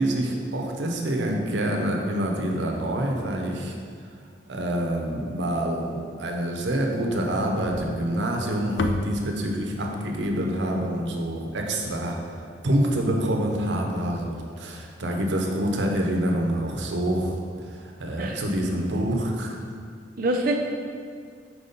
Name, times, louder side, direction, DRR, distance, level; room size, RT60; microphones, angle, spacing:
voice 1, 0.0-3.7 4.5-12.2 12.6-17.4 17.7-19.6, right 1 dB, 85° right, 1 dB, 0.7 m, -26 dB
sound 1, 7.7-12.0, left 2 dB, 80° left, 0.4 m, -34 dB
voice 2, 18.2-18.7 20.2-20.5, right 1 dB, 55° right, 1 dB, 0.6 m, -26 dB
4.7 x 4.1 x 5.1 m, 2.1 s
head